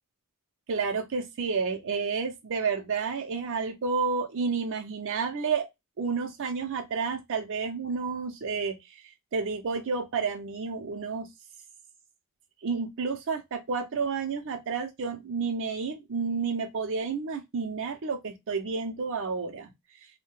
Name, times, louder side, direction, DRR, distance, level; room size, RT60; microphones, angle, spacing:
voice 1, 0.7-5.7 6.0-9.0 9.3-11.3 12.6-19.7, right 5 dB, 60° right, 0.5 m, -30 dB
2.6 x 2.1 x 2.9 m
head